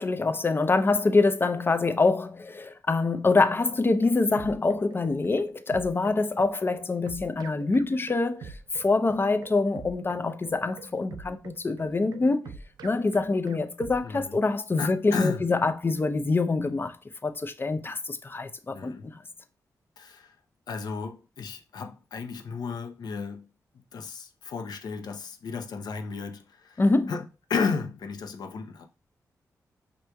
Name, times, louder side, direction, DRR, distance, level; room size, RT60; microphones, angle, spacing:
voice 1, 0.0-12.5 12.8-17.0 17.2-18.9 26.8-27.1, left 3 dB, 30° left, 0.5 m, -25 dB
sound 1, 3.7-14.3, right 5 dB, 75° right, 0.4 m, -45 dB
voice 2, 14.0-14.4 14.8-15.4 18.7-19.1 20.0-20.4 20.7-23.5 23.7-28.9, left 5 dB, 75° left, 0.7 m, -34 dB
5.1 x 3.0 x 2.2 m
cardioid pair, 65°, 7 cm